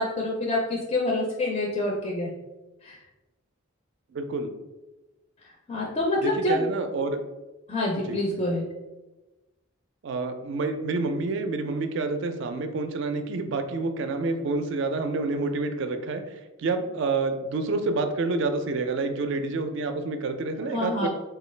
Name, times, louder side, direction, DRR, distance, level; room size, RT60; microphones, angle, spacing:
voice 1, 0.0-2.3 2.8-3.0 5.7-6.6 7.7-8.6 20.7-21.1, left 2 dB, 30° left, -2 dB, 0.4 m, -26 dB
voice 2, 4.1-4.5 6.2-7.2 8.1-8.2 10.0-16.2 16.6-21.1, right 3 dB, 60° right, 8 dB, 0.4 m, -28 dB
3.8 x 2.3 x 3.2 m, 1.1 s
head